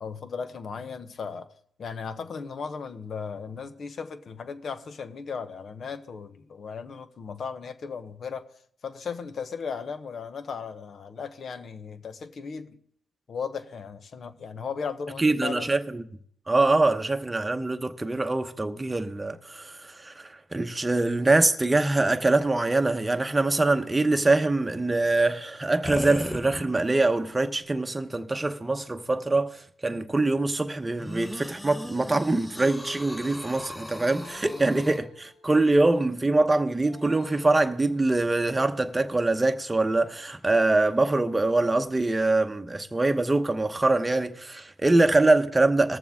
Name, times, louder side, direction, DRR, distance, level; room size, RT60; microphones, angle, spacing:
voice 1, 0.0-1.5 1.8-8.5 8.8-12.8 13.3-15.7 34.5-34.6, left 6 dB, 55° left, 0.9 m, -36 dB
voice 2, 15.2-16.0 16.5-46.0, right 2 dB, 20° right, 0.9 m, -24 dB
sound 1, 25.8-27.1 27.7-27.8 31.0-35.0, equal, 10° left, 0.7 m, -36 dB
sound 2, 34.2-35.8 36.8-38.4, left 2 dB, 85° left, 6.1 m, -50 dB
21.0 x 7.1 x 3.6 m
cardioid pair, 75°, 0 cm